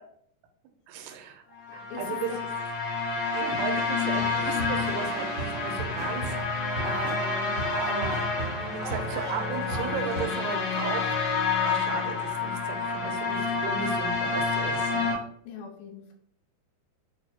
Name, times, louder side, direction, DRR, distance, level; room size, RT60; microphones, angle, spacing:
voice 1, 0.9-1.4 1.7-2.5 3.3-7.2 7.7-8.3 8.7-11.1 11.7-15.0, right 6 dB, 80° right, 5 dB, 2.5 m, -36 dB
sound 1, 1.6-15.1, left 4 dB, 55° left, 2.3 m, -29 dB
voice 2, 1.9-2.5 15.5-16.1, left 5 dB, 75° left, 1 dB, 2.1 m, -42 dB
sound 2, 4.2-10.2, right 2 dB, 45° right, 1.0 m, -37 dB
6.9 x 2.6 x 2.7 m, 0.67 s
omnidirectional pair, 4.7 m